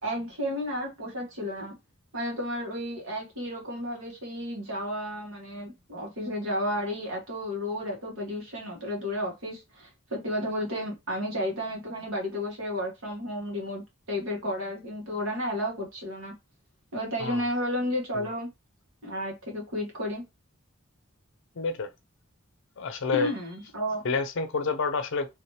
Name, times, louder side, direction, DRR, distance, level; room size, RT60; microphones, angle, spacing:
voice 1, 0.0-1.7 2.1-16.3 16.9-18.5 19.0-20.2 23.1-24.0, equal, 70° right, 1.7 m, -32 dB
voice 2, 21.6-21.9 22.8-23.3 24.0-25.3, left 4 dB, 65° left, 0.6 m, -28 dB
3.1 x 2.8 x 3.2 m
head